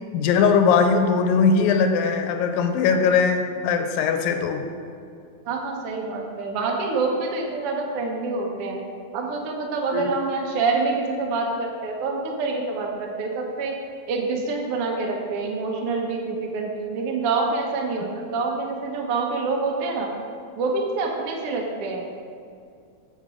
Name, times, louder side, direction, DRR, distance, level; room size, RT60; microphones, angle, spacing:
voice 1, 0.1-4.6 9.9-10.1, left 5 dB, 85° left, 6 dB, 2.3 m, -20 dB
voice 2, 5.5-8.8 9.1-13.7 14.1-20.1 20.6-22.0, right 3 dB, 75° right, 0 dB, 1.3 m, -26 dB
8.0 x 7.5 x 4.9 m, 2.4 s
omnidirectional pair, 4.2 m